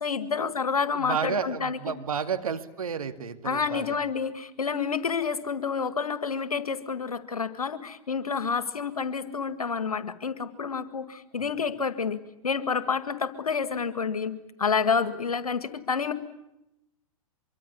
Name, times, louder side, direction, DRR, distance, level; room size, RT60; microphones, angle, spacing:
voice 1, 0.0-1.8 3.4-16.1, left 5 dB, 80° left, 12 dB, 2.0 m, -29 dB
voice 2, 0.9-4.0, right 6 dB, 75° right, 9 dB, 2.2 m, -31 dB
24.5 x 24.0 x 9.8 m, 0.90 s
figure-of-eight pair, 105°, 18 cm